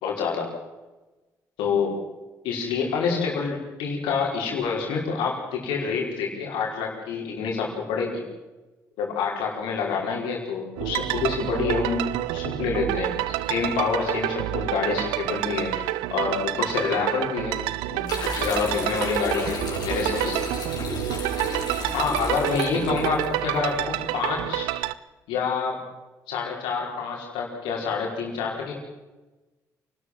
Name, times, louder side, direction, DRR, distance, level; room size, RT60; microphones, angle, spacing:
voice 1, 0.0-0.5 1.6-1.9 2.4-8.2 9.0-15.8 16.1-17.6 17.9-19.6 19.8-20.4 21.9-23.8 24.1-24.7 25.3-25.8 26.3-28.8, left 5 dB, 85° left, 0 dB, 5.0 m, -27 dB
sound 1, 10.8-24.9, right 16 dB, 90° right, 0.6 m, -28 dB
sound 2, 18.1-23.3, left 4 dB, 55° left, 6.3 m, -33 dB
27.5 x 12.5 x 7.6 m, 1.1 s
supercardioid pair, 55°, 8 cm